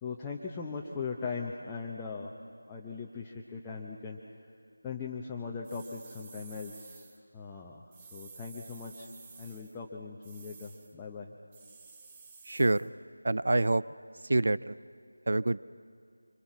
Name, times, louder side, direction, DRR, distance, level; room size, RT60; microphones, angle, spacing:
voice 1, 0.0-2.3 2.7-4.2 4.8-9.1 9.4-11.3, left 5 dB, 10° left, -3 dB, 0.9 m, -40 dB
sound 1, 5.6-7.2 7.9-9.8 10.2-10.9 11.5-12.9, right 4 dB, 15° right, 1.1 m, -52 dB
voice 2, 12.5-12.9 13.2-13.8 14.3-14.8 15.3-15.6, right 2 dB, 55° right, 16 dB, 0.5 m, -26 dB
26.0 x 25.5 x 6.1 m, 2.2 s
figure-of-eight pair, 165°, 0 cm